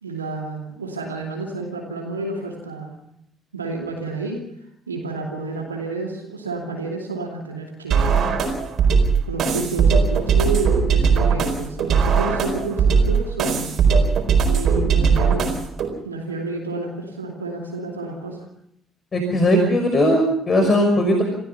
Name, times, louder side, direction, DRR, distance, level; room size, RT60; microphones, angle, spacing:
voice 1, 0.0-2.9 3.5-4.4 4.9-8.2 9.3-13.5 14.5-15.5 16.0-18.5, right 3 dB, 80° right, 1 dB, 2.7 m, -30 dB
sound 1, 7.9-15.9, right 5 dB, 50° right, 4.4 m, -19 dB
voice 2, 19.1-21.2, equal, 35° left, 4 dB, 5.7 m, -18 dB
28.0 x 17.0 x 5.6 m, 0.73 s
figure-of-eight pair, 50°, 0 cm